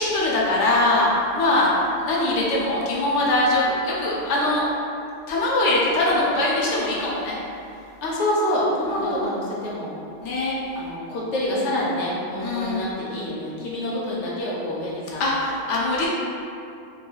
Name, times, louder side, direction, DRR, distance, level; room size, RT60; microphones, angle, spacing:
voice 1, 0.0-4.7 5.3-7.4 8.9-9.2 10.2-10.6 12.4-12.9 15.2-16.1, left 2 dB, 80° left, -4 dB, 0.9 m, -22 dB
voice 2, 8.0-9.9 10.7-15.2, left 1 dB, 50° left, -6 dB, 0.7 m, -26 dB
3.1 x 2.2 x 3.0 m, 2.6 s
omnidirectional pair, 1.2 m